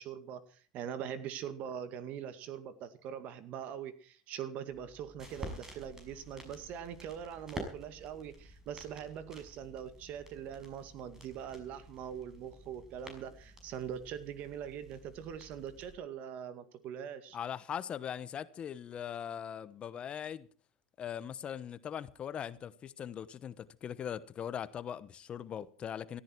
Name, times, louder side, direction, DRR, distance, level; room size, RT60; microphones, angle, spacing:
voice 1, 0.0-17.4, right 9 dB, 55° right, 2.1 m, -42 dB
sound 1, 4.7-15.9, right 1 dB, 15° right, 6.1 m, -50 dB
voice 2, 17.3-20.5 21.0-26.2, left 9 dB, 35° left, 1.0 m, -40 dB
17.5 x 14.0 x 4.6 m
supercardioid pair, 115°, 3 cm